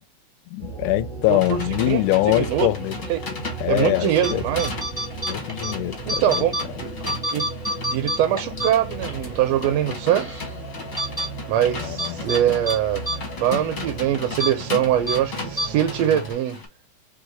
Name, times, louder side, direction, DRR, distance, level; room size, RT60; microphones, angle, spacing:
voice 1, 0.5-3.0 3.6-4.4 5.3-6.5 11.8-12.2, left 18 dB, 85° left, 2.0 m, -23 dB
sound 1, 0.6-16.3, right 3 dB, 5° left, 1.1 m, -35 dB
sound 2, 1.2-16.7, left 4 dB, 45° left, 1.1 m, -37 dB
voice 2, 1.3-2.7 3.1-3.2 3.7-4.7 6.1-6.9 7.3-7.5 7.9-10.4 11.5-13.0 13.4-16.6, right 11 dB, 75° right, 1.7 m, -23 dB
sound 3, 4.1-4.3 4.6-5.7 6.1-6.6 7.0-9.2 9.5-9.6 10.1-10.5 11.0-11.3 12.0-12.4 12.7-12.8 13.1-13.2 13.5-13.7 14.3-14.5 15.1-15.2 15.6-15.7, right 1 dB, 10° right, 1.3 m, -27 dB
4.8 x 2.8 x 3.9 m
omnidirectional pair, 3.6 m